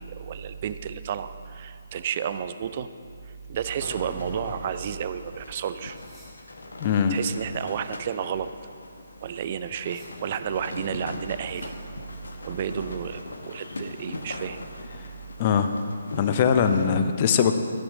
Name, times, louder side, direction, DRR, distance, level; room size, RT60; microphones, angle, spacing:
voice 1, 0.0-2.9 3.5-6.0 7.1-8.5 9.2-11.7 12.4-14.6, right 8 dB, 35° right, 12 dB, 0.4 m, -31 dB
sound 1, 3.0-11.9, equal, 5° right, 1.7 m, -48 dB
sound 2, 3.7-16.9, left 2 dB, 65° left, 1.0 m, -40 dB
voice 2, 6.8-7.2 15.4-15.7 16.1-17.5, left 7 dB, 30° left, 8 dB, 0.6 m, -21 dB
13.0 x 6.2 x 5.0 m, 2.4 s
figure-of-eight pair, 140°, 0 cm